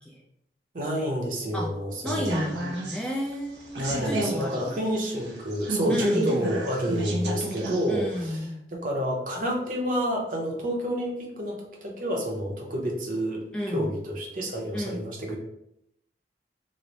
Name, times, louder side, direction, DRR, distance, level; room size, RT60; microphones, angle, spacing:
voice 1, 0.7-2.5 3.8-15.4, equal, 50° right, 0 dB, 0.7 m, -29 dB
voice 2, 2.0-4.8 5.9-6.3 7.9-8.6 13.5-13.9 14.7-15.1, equal, 5° left, -2 dB, 0.3 m, -32 dB
sound 1, 2.1-7.9 8.1-8.2, right 2 dB, 80° right, 0.8 m, -31 dB
3.1 x 2.0 x 3.9 m, 0.78 s
head